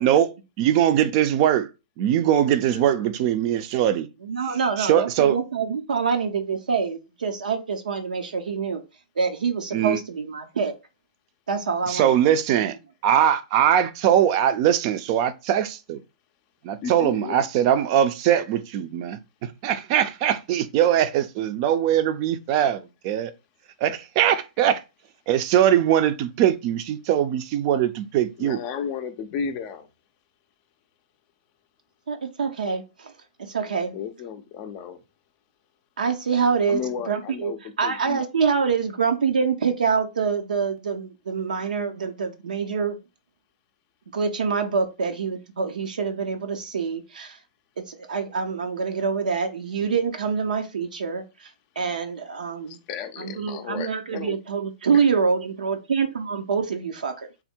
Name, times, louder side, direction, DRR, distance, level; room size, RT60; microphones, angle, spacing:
voice 1, 0.0-1.7 2.0-4.1 4.8-5.4 9.7-10.0 11.9-12.8 13.0-16.0 16.6-23.3 23.8-24.8 25.3-28.6, right 10 dB, 40° right, 0.5 m, -21 dB
voice 2, 2.7-3.1 16.8-17.4 28.4-29.9 33.9-35.0 36.7-38.2 52.6-54.4 54.9-55.0, left 6 dB, 35° left, 0.4 m, -34 dB
voice 3, 4.2-8.8 9.2-10.7 11.5-12.4 12.6-12.7 32.1-33.1 33.4-34.0 36.0-37.5 37.8-43.0 44.1-47.4 47.8-51.5 51.8-52.8 53.2-57.3, right 5 dB, 85° right, 0.6 m, -26 dB
3.5 x 2.1 x 4.2 m
hypercardioid pair, 130°, 4 cm